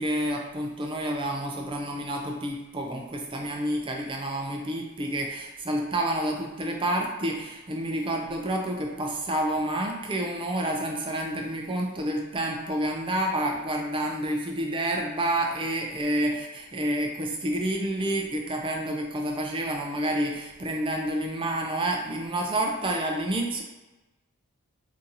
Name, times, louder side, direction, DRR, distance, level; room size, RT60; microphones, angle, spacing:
voice 1, 0.0-23.6, right 1 dB, 25° right, 1 dB, 0.4 m, -29 dB
2.8 x 2.6 x 3.8 m, 1.1 s
head